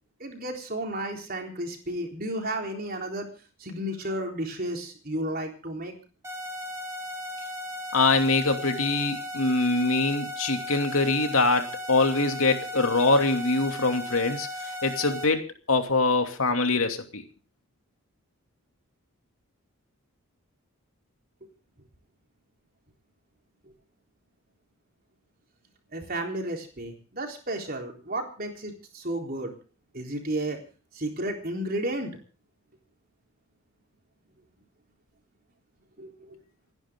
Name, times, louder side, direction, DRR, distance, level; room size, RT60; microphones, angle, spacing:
voice 1, 0.2-3.3 3.6-5.9 25.9-29.5 29.9-30.6 30.9-32.1 36.0-36.4, right 1 dB, 40° right, 2 dB, 3.8 m, -32 dB
sound 1, 6.2-15.3, left 1 dB, 10° right, 3.4 m, -36 dB
voice 2, 7.9-15.4 15.7-17.2, left 3 dB, 70° left, 5 dB, 2.7 m, -24 dB
29.0 x 10.5 x 3.8 m, 0.37 s
head